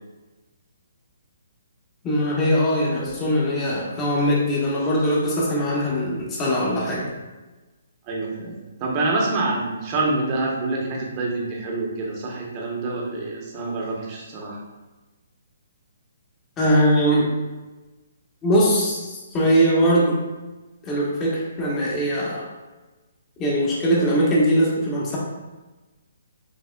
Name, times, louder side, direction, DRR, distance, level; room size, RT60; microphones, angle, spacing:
voice 1, 2.0-7.1 16.6-17.3 18.4-20.2 20.8-22.5 23.4-25.2, equal, 20° left, -5 dB, 1.2 m, -21 dB
voice 2, 8.1-8.5 8.8-14.6, right 2 dB, 30° right, -3 dB, 1.1 m, -26 dB
5.5 x 2.9 x 2.3 m, 1.2 s
hypercardioid pair, 140°, 0 cm